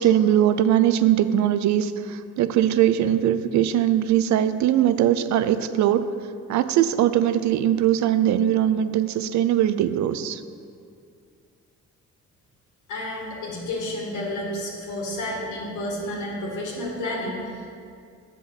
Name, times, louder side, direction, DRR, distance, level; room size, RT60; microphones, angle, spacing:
voice 1, 0.0-6.1 6.5-10.4, right 11 dB, 70° right, 12 dB, 0.5 m, -21 dB
voice 2, 12.9-17.7, left 1 dB, 90° left, -3 dB, 1.9 m, -31 dB
7.0 x 5.9 x 6.0 m, 2.3 s
cardioid pair, 90°, 30 cm